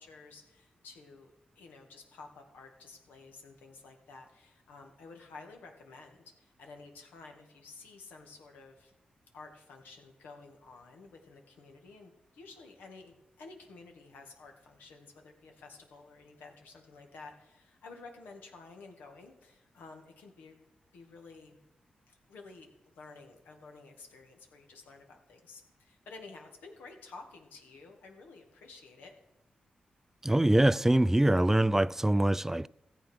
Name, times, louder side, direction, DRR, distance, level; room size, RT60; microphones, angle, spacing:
voice 1, 0.0-8.9 9.3-20.6 20.9-21.6 22.1-29.1, left 3 dB, 90° left, 2.0 m, -52 dB
voice 2, 30.2-32.7, right 1 dB, 15° right, 0.4 m, -24 dB
14.5 x 7.9 x 6.4 m
supercardioid pair, 45°, 3 cm